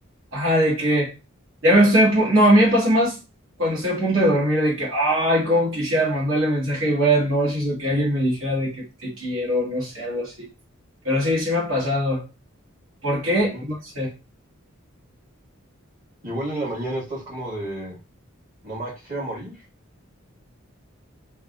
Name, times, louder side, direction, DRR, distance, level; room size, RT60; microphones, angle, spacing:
voice 1, 0.3-1.1 1.6-3.1 3.6-10.5 11.0-12.3 13.0-14.1, equal, 70° right, 1.4 m, -21 dB
voice 2, 16.2-18.0 18.6-19.6, right 1 dB, 40° right, 1.7 m, -31 dB
3.5 x 2.3 x 2.4 m
head